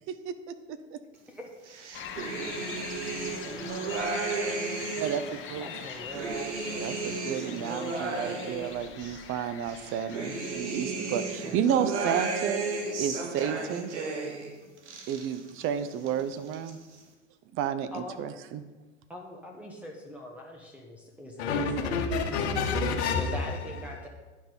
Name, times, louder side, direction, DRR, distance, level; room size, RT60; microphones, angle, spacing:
sound 1, 1.7-5.3 5.8-9.2 9.7-14.5 14.8-15.6 15.9-16.7, right 3 dB, 70° right, 1.4 m, -34 dB
sound 2, 1.9-12.0, left 7 dB, 35° left, 1.0 m, -43 dB
voice 1, 5.0-5.7 6.8-12.7 13.0-13.9 15.1-16.8 17.5-18.6, right 8 dB, 35° right, 12 dB, 0.7 m, -31 dB
voice 2, 5.5-6.9 17.9-18.2 19.1-22.1 23.2-24.1, left 1 dB, 5° right, 0 dB, 1.3 m, -42 dB
voice 3, 21.4-23.4, left 4 dB, 60° left, 3 dB, 1.3 m, -28 dB
9.4 x 5.9 x 5.2 m, 1.2 s
figure-of-eight pair, 90°, 37 cm